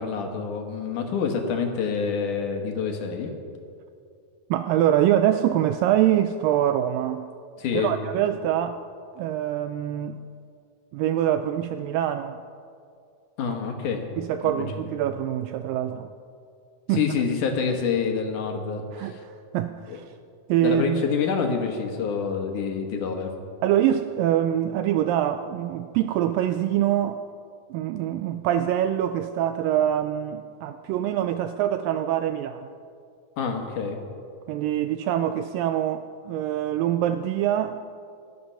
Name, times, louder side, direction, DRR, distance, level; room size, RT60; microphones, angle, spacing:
voice 1, 0.0-3.3 7.6-8.0 13.4-14.1 14.4-14.7 16.9-19.2 19.9-20.0 20.6-23.3 33.4-34.0, left 6 dB, 65° left, 3 dB, 2.4 m, -27 dB
voice 2, 4.5-7.2 7.7-8.8 9.2-10.2 10.9-12.4 14.2-16.1 16.9-17.0 18.9-20.1 20.5-21.0 23.6-27.2 27.7-32.7 34.5-37.8, right 11 dB, 85° right, 10 dB, 2.0 m, -24 dB
17.5 x 12.5 x 5.6 m, 2.4 s
omnidirectional pair, 4.3 m